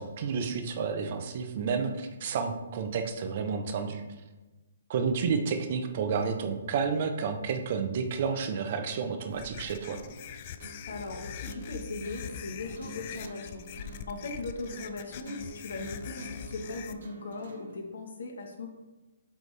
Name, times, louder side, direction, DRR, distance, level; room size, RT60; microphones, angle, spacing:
voice 1, 0.0-4.0 4.9-10.0, right 5 dB, 40° right, 6 dB, 0.7 m, -30 dB
sound 1, 9.3-16.9, left 8 dB, 35° left, 0.3 m, -43 dB
sound 2, 9.8-17.8, right 2 dB, 65° right, 1.0 m, -47 dB
voice 2, 10.9-18.7, left 3 dB, 70° left, 2 dB, 1.3 m, -39 dB
8.2 x 3.4 x 3.4 m, 1.1 s
hypercardioid pair, 160°, 0 cm